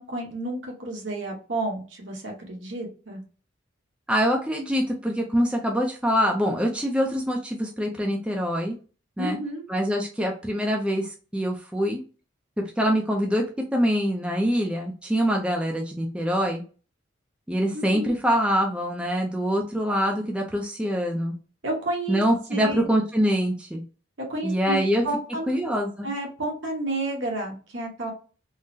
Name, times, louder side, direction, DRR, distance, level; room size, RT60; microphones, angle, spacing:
voice 1, 0.0-3.2 9.2-9.6 17.7-18.1 21.6-22.2 22.5-22.9 24.2-24.8 25.0-25.6 26.0-28.1, right 2 dB, 70° right, 0 dB, 1.1 m, -31 dB
voice 2, 4.1-8.7 9.2-9.4 9.7-12.0 12.8-13.4 13.7-16.6 17.5-21.3 22.1-23.8 24.4-25.0 25.5-26.1, equal, 5° right, 0 dB, 0.4 m, -24 dB
3.7 x 2.0 x 2.6 m, 0.36 s
head